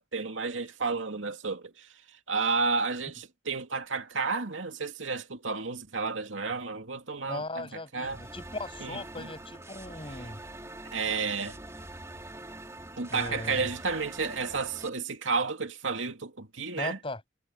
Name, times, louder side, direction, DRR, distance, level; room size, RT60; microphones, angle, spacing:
voice 1, 0.0-1.9 2.3-8.2 8.8-9.3 10.9-11.6 13.0-17.0, right 4 dB, 80° right, 2.5 m, -32 dB
voice 2, 7.3-10.4 13.1-13.7 16.8-17.2, left 2 dB, 30° left, 7.8 m, -38 dB
sound 1, 8.0-14.9, right 1 dB, 15° right, 2.9 m, -44 dB
head